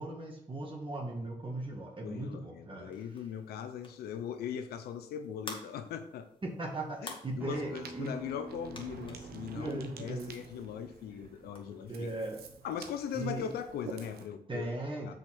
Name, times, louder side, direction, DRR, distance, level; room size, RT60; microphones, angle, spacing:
voice 1, 0.0-2.9 6.4-8.2 9.5-10.3 11.9-12.4 13.1-13.5 14.5-15.1, right 2 dB, 35° right, -1 dB, 2.1 m, -38 dB
voice 2, 2.0-6.3 7.0-12.1 12.6-14.7 15.1-15.2, left 8 dB, 90° left, 9 dB, 0.8 m, -40 dB
sound 1, 2.9-12.0, left 2 dB, 35° left, 2.0 m, -52 dB
Acoustic guitar, 7.4-12.6, right 2 dB, 10° right, 0.9 m, -50 dB
Ocean, 7.5-14.3, right 6 dB, 80° right, 1.0 m, -50 dB
6.2 x 5.2 x 6.1 m, 0.71 s
supercardioid pair, 55°, 16 cm